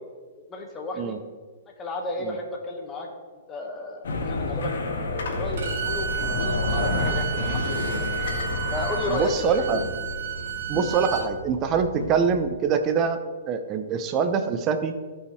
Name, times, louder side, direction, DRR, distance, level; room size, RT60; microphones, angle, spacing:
voice 1, 0.5-1.2 1.8-3.1 3.5-4.8 5.3-8.0 8.7-9.7, left 2 dB, 20° left, 0 dB, 1.6 m, -33 dB
sound 1, 4.0-12.5, left 2 dB, 75° left, 1.7 m, -30 dB
Bowed string instrument, 5.6-11.3, right 9 dB, 70° right, 2.4 m, -32 dB
voice 2, 9.1-9.8 10.7-13.2 13.5-14.9, right 6 dB, 30° right, 9 dB, 0.7 m, -24 dB
15.0 x 5.6 x 3.3 m, 1.5 s
hypercardioid pair, 135°, 0 cm